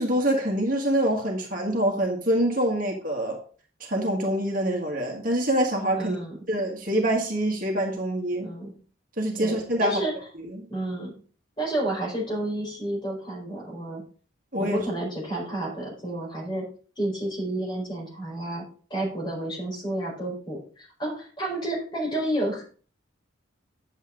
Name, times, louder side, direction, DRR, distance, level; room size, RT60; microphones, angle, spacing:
voice 1, 0.0-3.4 3.8-6.2 6.5-8.5 9.2-10.0 10.5-10.7 14.5-14.8, right 1 dB, 45° right, 1 dB, 1.7 m, -25 dB
voice 2, 6.0-6.4 8.4-8.7 9.4-10.1 10.7-11.1 11.6-14.0 14.6-16.6 17.0-18.6 18.9-22.6, right 1 dB, 25° left, -2 dB, 4.4 m, -30 dB
9.6 x 7.4 x 3.8 m, 0.40 s
head